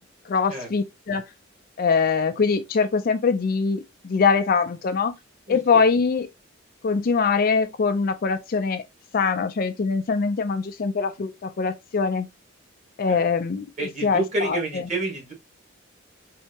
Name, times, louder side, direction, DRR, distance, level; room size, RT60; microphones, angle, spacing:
voice 1, 0.3-1.2 1.8-5.1 5.5-6.3 6.8-8.8 9.1-12.3 13.0-13.7 14.0-14.8, left 5 dB, 45° left, 0.4 m, -23 dB
voice 2, 5.5-5.8 13.1-13.2 13.8-15.3, right 2 dB, 35° right, 1.7 m, -29 dB
4.3 x 2.8 x 2.8 m
head